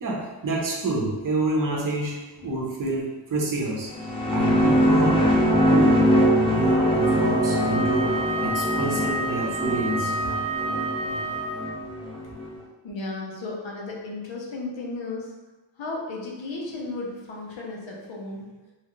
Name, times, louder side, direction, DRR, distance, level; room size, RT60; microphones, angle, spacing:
voice 1, 0.0-3.9 4.3-10.4, right 2 dB, 45° right, -3 dB, 0.7 m, -28 dB
sound 1, 3.8-12.5, equal, 15° left, 0.3 m, -22 dB
Wind instrument woodwind instrument, 7.0-11.9, right 1 dB, 10° right, 0.9 m, -30 dB
voice 2, 12.8-15.3 15.8-18.5, left 2 dB, 90° left, -2 dB, 0.8 m, -34 dB
2.9 x 2.4 x 2.9 m, 1.1 s
wide cardioid pair, 150°, 45 cm